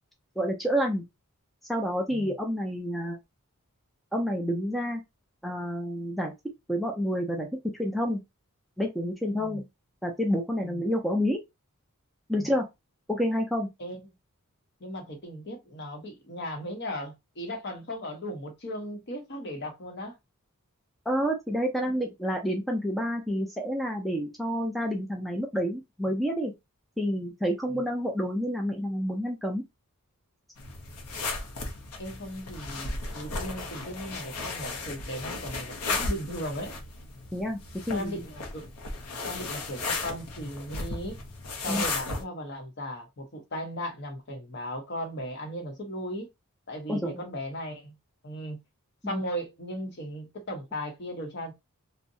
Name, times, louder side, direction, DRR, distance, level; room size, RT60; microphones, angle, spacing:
voice 1, 0.4-1.0 1.7-3.2 4.1-5.0 5.4-6.3 6.7-8.2 8.8-9.6 10.0-11.4 12.3-12.7 13.1-13.7 21.1-26.5 27.0-29.6 37.3-37.6 37.9-38.2 41.7-41.8 46.9-47.2 49.0-49.2, equal, ahead, 0.4 m, -29 dB
voice 2, 14.8-20.2 27.7-27.8 32.0-36.7 37.9-38.7 39.2-41.2 41.6-46.3 46.7-47.9 48.2-48.6 49.1-51.5, equal, 50° left, 0.8 m, -37 dB
sound 1, 30.6-42.2, left 3 dB, 90° left, 0.7 m, -35 dB
2.7 x 2.1 x 2.6 m
head